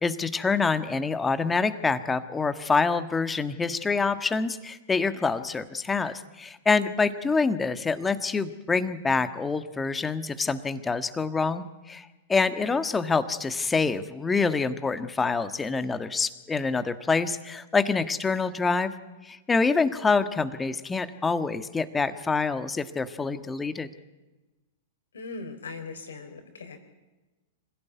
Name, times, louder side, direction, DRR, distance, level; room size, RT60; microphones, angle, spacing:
voice 1, 0.0-18.9 19.3-23.9, left 4 dB, 15° left, 11 dB, 1.5 m, -26 dB
voice 2, 25.1-26.8, left 3 dB, 80° left, 6 dB, 4.2 m, -39 dB
26.0 x 16.5 x 9.4 m, 1.1 s
hypercardioid pair, 105°, 0 cm